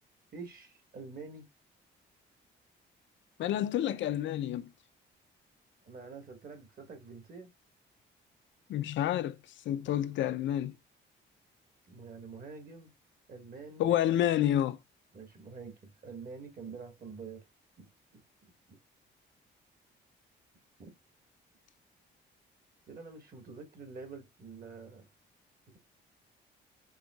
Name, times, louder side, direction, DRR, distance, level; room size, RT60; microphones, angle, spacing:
voice 1, 0.3-1.5 5.9-7.5 9.8-10.0 11.9-12.9 13.3-13.9 15.1-17.4 17.8-18.2 20.8-20.9 22.9-25.1, right 4 dB, 45° right, 1.5 m, -47 dB
voice 2, 3.4-4.7 8.7-9.4 9.7-10.7 13.8-14.8, left 11 dB, 70° left, 0.5 m, -29 dB
5.5 x 2.6 x 2.3 m
cardioid pair, 90°, 20 cm